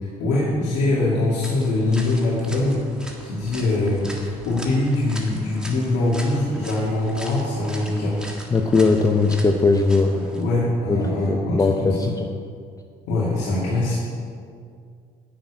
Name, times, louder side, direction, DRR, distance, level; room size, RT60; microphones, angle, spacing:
voice 1, 0.2-2.8 3.2-4.1 4.5-8.2 10.1-12.1 13.1-14.0, left 2 dB, 90° left, -7 dB, 2.4 m, -23 dB
sound 1, 1.4-10.4, right 1 dB, 5° right, 1.8 m, -40 dB
voice 2, 8.5-10.1 10.9-12.3, left 3 dB, 20° left, 5 dB, 0.7 m, -19 dB
10.0 x 6.6 x 8.8 m, 2.2 s
cardioid pair, 110°, 17 cm